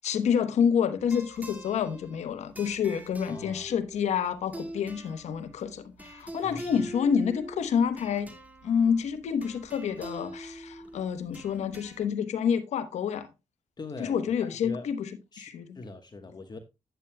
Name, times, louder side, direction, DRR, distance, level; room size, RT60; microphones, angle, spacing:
voice 1, 0.0-8.3 8.6-13.3 14.0-15.1 15.4-15.8, left 7 dB, 85° left, 1.0 m, -28 dB
sound 1, 1.0-12.1, right 1 dB, 15° right, 2.1 m, -44 dB
voice 2, 3.3-3.7 6.4-6.8 13.8-14.9 15.3-15.5 15.7-16.6, left 3 dB, 40° left, 1.2 m, -42 dB
9.3 x 9.0 x 2.2 m
cardioid pair, 60°, 11 cm